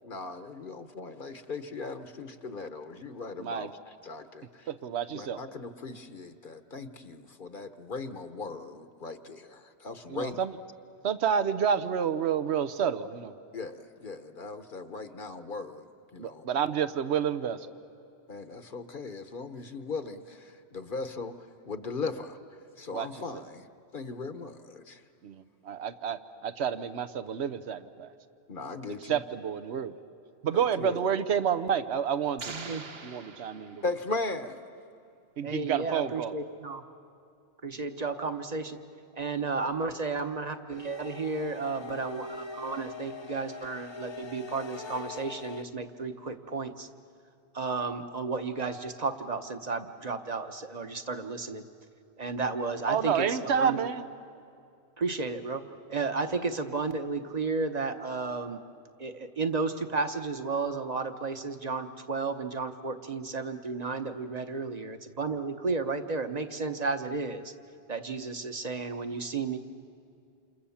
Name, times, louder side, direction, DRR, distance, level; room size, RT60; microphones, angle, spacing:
voice 1, 0.0-4.7 5.1-10.4 13.5-16.4 18.3-21.3 21.6-22.4 22.8-23.7 23.9-25.0 28.5-29.2 30.5-31.1 33.8-34.6, left 3 dB, 50° left, 9 dB, 1.1 m, -38 dB
voice 2, 3.4-3.7 4.7-5.4 10.1-10.6 11.0-13.3 16.2-17.7 22.9-23.4 25.2-28.1 29.0-29.9 30.4-32.5 33.0-33.8 35.4-36.4 52.9-54.0, right 7 dB, 80° right, 12 dB, 1.1 m, -29 dB
sound 1, 32.4-34.3, right 4 dB, 65° right, 1.3 m, -43 dB
voice 3, 32.5-32.9 35.4-36.8 37.6-38.8 39.1-46.9 47.5-51.6 52.2-53.8 55.0-55.6 55.9-58.6 59.0-67.5 67.9-69.6, right 4 dB, 40° right, 7 dB, 1.1 m, -33 dB
sound 2, 40.7-45.6, left 3 dB, 30° left, 0.7 m, -42 dB
28.5 x 28.0 x 7.2 m, 2.5 s
omnidirectional pair, 1.1 m